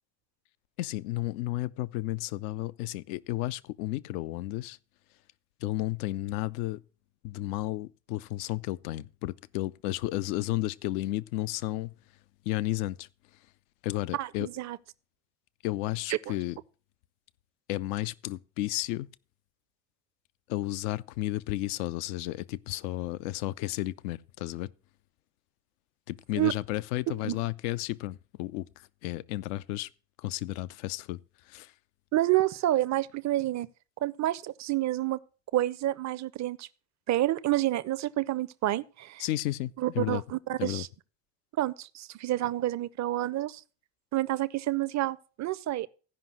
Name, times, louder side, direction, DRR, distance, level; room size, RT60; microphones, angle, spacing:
voice 1, 0.8-4.8 5.6-6.8 7.2-11.9 12.5-13.1 13.8-14.5 15.6-16.6 17.7-19.1 20.5-24.7 26.1-28.7 29.0-29.9 30.2-31.2 31.5-31.7 39.2-40.2 40.6-40.9, left 16 dB, 65° left, 0.6 m, -32 dB
voice 2, 14.1-14.8 16.1-16.3 26.3-26.5 27.2-27.4 32.1-33.7 34.0-35.2 35.5-36.7 37.1-39.2 39.8-40.9 41.6-43.6 44.1-45.9, right 15 dB, 35° right, 0.6 m, -29 dB
14.5 x 5.4 x 6.0 m
figure-of-eight pair, 50°, 49 cm